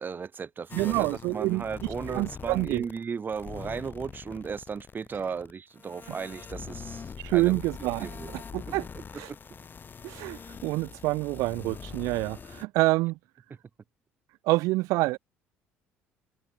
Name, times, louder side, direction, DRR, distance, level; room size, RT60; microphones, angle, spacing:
voice 1, 0.0-7.6 8.0-8.3 8.7-9.0 9.3-9.4, right 6 dB, 30° right, 4.5 m, -36 dB
sound 1, 0.7-3.0 3.3-12.6, left 6 dB, 35° left, 6.5 m, -43 dB
voice 2, 0.7-1.6 2.1-2.9 7.2-8.9 9.1-9.3 10.0-13.2 14.4-15.2, right 21 dB, 60° right, 1.4 m, -27 dB
figure-of-eight pair, 55°, 6 cm